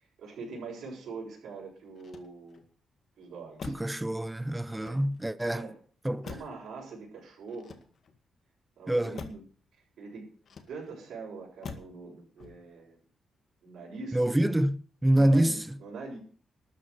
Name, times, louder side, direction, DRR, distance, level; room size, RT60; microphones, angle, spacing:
voice 1, 0.2-2.6 3.2-3.7 4.8-5.0 5.5-5.7 6.2-7.8 8.8-9.4 10.0-10.3 10.7-13.0 13.6-14.2 15.1-16.2, right 4 dB, 70° right, 6.6 m, -43 dB
Motor vehicle (road), 1.9-2.7 3.6-4.0 4.7-5.4 6.2-6.7 7.5-8.2 9.1-9.5 10.4-11.0 11.6-12.0 12.4-12.8, left 5 dB, 50° left, 1.9 m, -45 dB
voice 2, 3.6-5.7 6.0-6.3 8.9-9.2 14.1-15.8, right 1 dB, 10° right, 0.6 m, -26 dB
13.0 x 8.5 x 7.9 m
cardioid pair, 150°, 0 cm